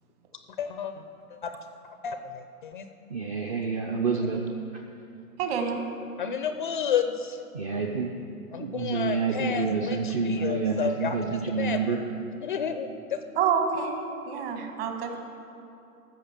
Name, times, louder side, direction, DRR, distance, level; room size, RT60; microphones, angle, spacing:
voice 1, 0.6-0.9 1.4-1.5 2.0-2.9 6.2-7.4 8.5-12.0 12.4-13.2, left 7 dB, 35° left, 8 dB, 0.4 m, -31 dB
voice 2, 3.1-4.4 7.5-8.1 8.6-12.0, right 5 dB, 25° right, 2 dB, 0.5 m, -28 dB
voice 3, 5.4-5.8 13.4-14.0 14.3-15.2, right 6 dB, 40° right, 4 dB, 1.6 m, -27 dB
13.5 x 6.4 x 7.2 m, 2.7 s
hypercardioid pair, 125°, 45 cm